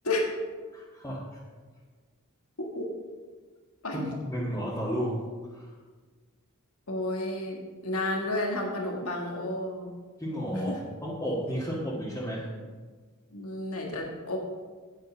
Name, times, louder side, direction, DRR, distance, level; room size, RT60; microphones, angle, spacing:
voice 1, 0.7-1.4 3.9-5.7 10.2-12.5, equal, 15° left, -7 dB, 1.7 m, -33 dB
voice 2, 6.9-9.9 10.7-10.8 13.3-14.4, left 1 dB, 75° left, 1 dB, 1.6 m, -31 dB
9.1 x 8.3 x 6.0 m, 1.5 s
head